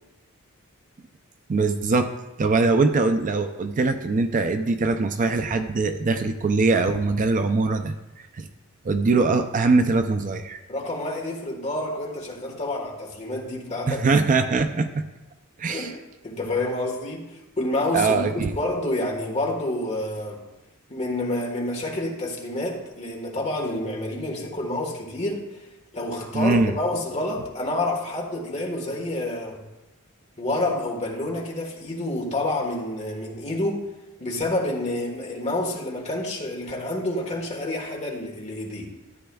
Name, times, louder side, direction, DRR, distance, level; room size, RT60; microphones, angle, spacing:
voice 1, 1.5-2.1 2.4-8.5 8.8-10.6 13.9-15.1 15.6-15.9 17.9-18.5 26.3-26.7, right 3 dB, 35° right, 8 dB, 0.4 m, -22 dB
voice 2, 10.7-14.0 15.7-16.0 16.2-20.4 20.9-25.6 25.9-29.6 30.4-33.8 34.2-38.9, left 1 dB, 30° left, -1 dB, 1.5 m, -28 dB
13.5 x 8.7 x 2.3 m, 1.1 s
head